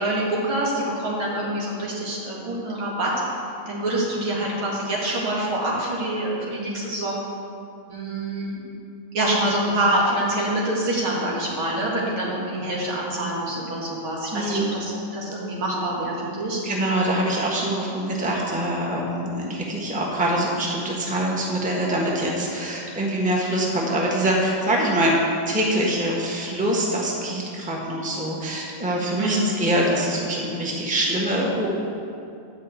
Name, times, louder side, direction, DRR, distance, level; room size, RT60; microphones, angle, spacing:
voice 1, 0.0-3.1 3.7-7.2 7.9-8.6 9.1-16.6 29.2-29.6, right 1 dB, 80° right, -4 dB, 2.9 m, -26 dB
voice 2, 14.3-14.8 16.6-25.1 25.5-31.7, right 1 dB, 5° right, -3 dB, 1.1 m, -24 dB
10.5 x 5.1 x 8.1 m, 2.5 s
omnidirectional pair, 2.2 m